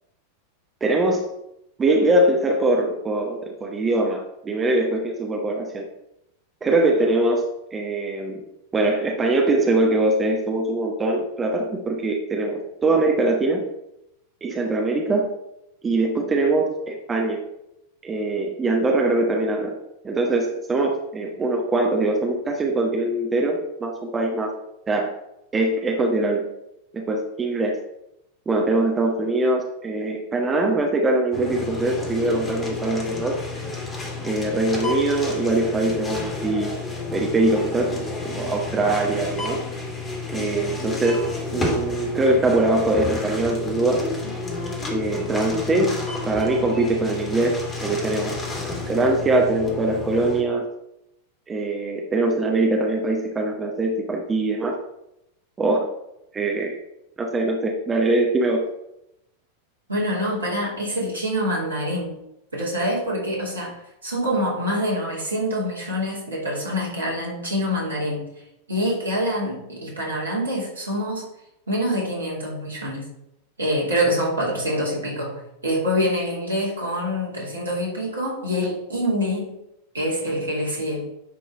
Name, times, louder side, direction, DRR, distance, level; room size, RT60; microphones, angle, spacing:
voice 1, 0.8-1.3 1.8-5.9 6.6-8.4 8.7-13.7 14.4-15.3 15.8-17.4 18.0-19.8 20.0-24.5 24.9-25.1 25.5-26.5 26.9-27.8 28.5-33.4 34.2-36.7 37.1-39.6 40.3-44.1 44.9-48.4 48.8-50.7 51.5-54.8 55.6-55.9 56.3-56.8 57.2-58.6, right 2 dB, 20° right, 0 dB, 1.2 m, -22 dB
sound 1, 31.3-50.4, left 3 dB, 20° left, 2.4 m, -30 dB
voice 2, 59.9-62.1 62.5-68.3 68.7-71.3 71.7-73.1 73.6-79.6 79.9-81.1, equal, 75° right, -4 dB, 3.0 m, -25 dB
10.5 x 3.8 x 4.8 m, 0.83 s
figure-of-eight pair, 90°, 0 cm